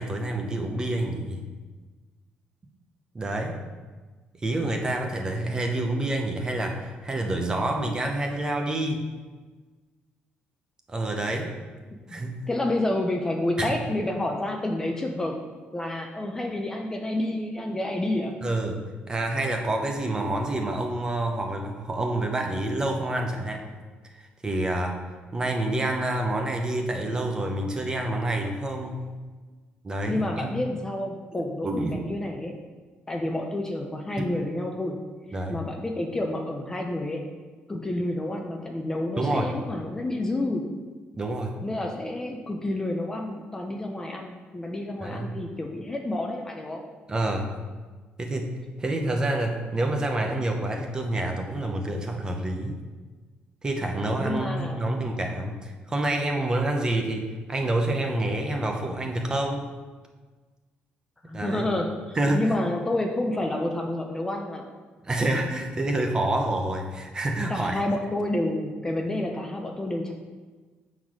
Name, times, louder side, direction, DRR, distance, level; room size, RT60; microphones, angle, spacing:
voice 1, 0.0-1.4 3.1-3.6 4.4-9.1 10.9-11.5 12.1-12.5 13.6-13.7 18.4-23.7 24.2-25.0 25.3-29.0 29.8-30.5 31.3-32.0 35.3-35.6 39.2-39.6 41.2-41.6 45.0-45.4 47.1-47.5 48.2-48.5 48.8-52.8 53.6-59.7 61.3-61.7 62.1-62.5 65.0-67.8, right 1 dB, 20° right, 3 dB, 0.8 m, -28 dB
voice 2, 12.5-15.4 15.7-18.3 30.1-32.6 33.1-35.0 35.5-37.2 37.7-40.7 41.6-46.8 54.2-54.9 61.2-64.7 67.5-70.1, left 1 dB, 15° left, 2 dB, 0.6 m, -29 dB
6.8 x 4.0 x 6.1 m, 1.4 s
cardioid pair, 145°, 4 cm